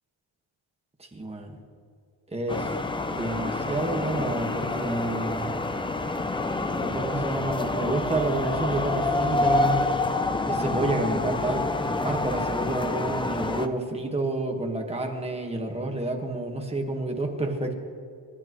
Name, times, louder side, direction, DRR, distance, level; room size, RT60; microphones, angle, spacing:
voice 1, 1.0-1.5 2.3-2.7 3.1-5.5 6.7-9.9 10.5-11.7 11.9-17.7, right 2 dB, 15° right, 2 dB, 1.5 m, -29 dB
sound 1, 2.5-13.7, left 2 dB, 10° left, 0.4 m, -27 dB
27.5 x 12.0 x 3.1 m, 2.4 s
cardioid pair, 175°, 46 cm